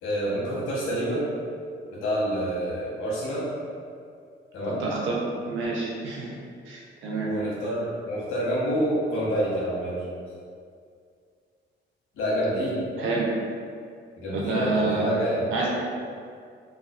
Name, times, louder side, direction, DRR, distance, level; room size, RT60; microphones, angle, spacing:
voice 1, 0.0-1.2 1.9-3.5 4.5-4.8 7.2-10.0 12.1-12.8 14.2-15.4, equal, 85° left, -8 dB, 0.9 m, -27 dB
voice 2, 4.8-5.1 5.5-6.3 6.7-7.3 13.0-13.3 14.3-15.1 15.5-15.7, right 3 dB, 80° right, -3 dB, 0.6 m, -28 dB
2.4 x 2.3 x 2.3 m, 2.3 s
cardioid pair, 90°, 20 cm